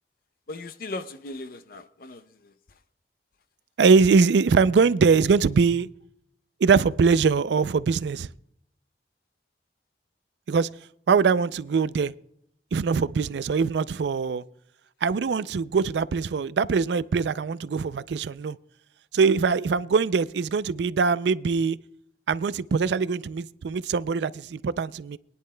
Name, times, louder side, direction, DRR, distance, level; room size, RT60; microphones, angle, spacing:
voice 1, 0.5-2.5 4.6-4.7, left 2 dB, 55° left, 0.6 m, -38 dB
voice 2, 3.8-5.9 6.6-8.3 10.5-10.7 11.1-12.1 12.7-14.4 15.0-18.6 19.1-21.8 22.3-25.2, right 5 dB, 75° right, 0.4 m, -22 dB
22.0 x 10.5 x 2.2 m
head